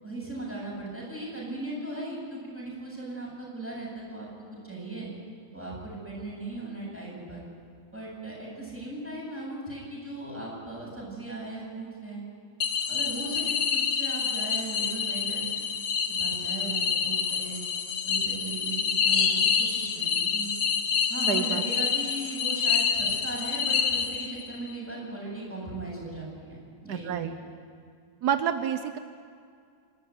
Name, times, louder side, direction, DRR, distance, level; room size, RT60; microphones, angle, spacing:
voice 1, 0.0-4.3 4.6-5.1 5.5-7.4 7.9-12.2 12.9-15.5 16.2-17.6 18.0-20.5 21.1-26.6 26.8-27.3, right 2 dB, 10° right, -5 dB, 8.0 m, -38 dB
sound 1, 12.6-24.6, left 6 dB, 70° left, 1.6 m, -27 dB
voice 2, 21.3-21.6 26.9-27.4 28.2-29.0, right 8 dB, 85° right, 9 dB, 1.4 m, -28 dB
26.5 x 13.0 x 9.5 m, 2.2 s
omnidirectional pair, 1.7 m